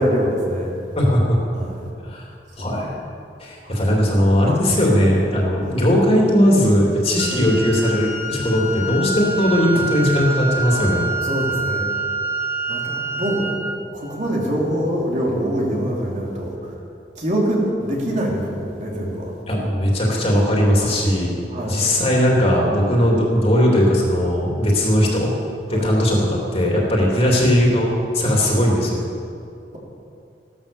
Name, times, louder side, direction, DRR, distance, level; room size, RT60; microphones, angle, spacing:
voice 1, 0.0-0.8 1.5-1.8 2.6-2.7 3.6-3.8 5.6-5.7 7.3-7.4 9.7-9.8 11.2-11.8 12.7-13.4 13.9-16.5 17.2-19.3 20.8-21.0 21.5-21.8 23.0-23.1 25.7-25.9 27.1-27.2, equal, 45° right, -3 dB, 3.3 m, -24 dB
voice 2, 0.9-1.4 2.0-2.3 2.6-3.1 3.4-11.1 19.5-21.4 21.6-25.3 25.7-29.0, equal, 35° left, -3 dB, 3.2 m, -18 dB
Wind instrument woodwind instrument, 7.2-13.8, right 3 dB, 15° right, 2.0 m, -26 dB
16.0 x 12.5 x 7.2 m, 2.5 s
head